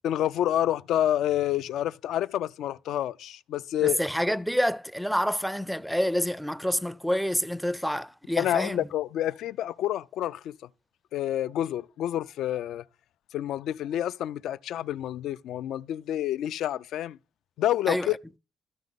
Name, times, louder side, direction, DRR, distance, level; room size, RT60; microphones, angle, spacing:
voice 1, 0.0-4.0 8.4-10.6 11.1-12.8 13.3-17.2 17.6-18.2, left 12 dB, 80° left, 0.4 m, -28 dB
voice 2, 3.8-8.9 17.9-18.1, equal, ahead, 0.4 m, -28 dB
13.0 x 5.2 x 3.9 m
cardioid pair, 90°, 0 cm